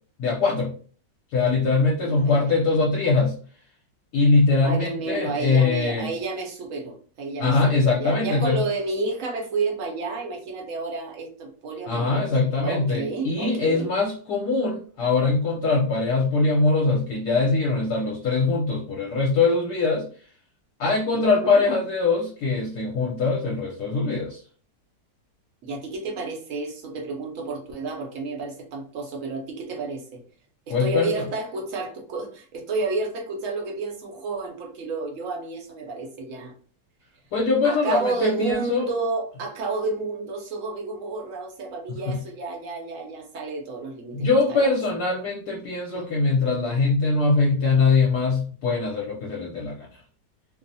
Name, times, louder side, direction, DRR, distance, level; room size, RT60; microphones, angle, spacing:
voice 1, 0.2-0.7 1.3-3.4 4.1-6.1 7.4-8.6 11.9-20.1 20.8-24.4 30.7-31.2 37.3-38.9 41.9-42.2 44.1-50.0, left 3 dB, 70° left, -3 dB, 1.1 m, -22 dB
voice 2, 2.0-2.6 4.6-13.9 21.1-21.7 25.6-30.2 30.7-36.5 37.6-44.7 45.9-46.1, right 3 dB, 60° right, 1 dB, 0.9 m, -31 dB
2.9 x 2.0 x 2.6 m, 0.43 s
omnidirectional pair, 1.9 m